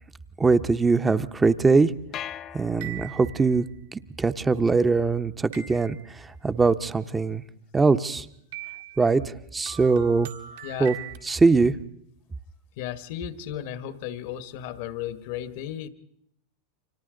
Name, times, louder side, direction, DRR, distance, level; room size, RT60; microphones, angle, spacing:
voice 1, 0.4-1.9 2.5-3.7 3.9-7.4 7.7-8.3 9.0-10.3 10.8-11.0 11.2-11.7, right 4 dB, 15° right, 11 dB, 0.9 m, -22 dB
sound 1, 2.1-3.5, left 11 dB, 40° left, 0.7 m, -39 dB
sound 2, 2.8-3.6 5.5-6.2 8.5-9.1 9.7-11.2, right 11 dB, 70° right, 1.9 m, -41 dB
voice 2, 10.6-10.9 12.8-15.9, left 11 dB, 60° left, 12 dB, 1.4 m, -34 dB
29.5 x 25.0 x 3.9 m, 0.72 s
hypercardioid pair, 100°, 0 cm